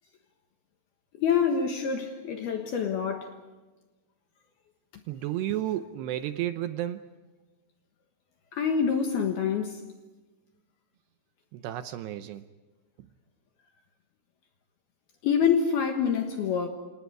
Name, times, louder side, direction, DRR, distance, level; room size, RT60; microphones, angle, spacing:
voice 1, 1.2-3.4 8.5-9.8 15.2-16.7, left 7 dB, 65° left, 2.8 m, -26 dB
voice 2, 5.1-7.1 11.5-12.4, right 13 dB, 80° right, 2.5 m, -32 dB
28.5 x 27.5 x 4.8 m
omnidirectional pair, 5.7 m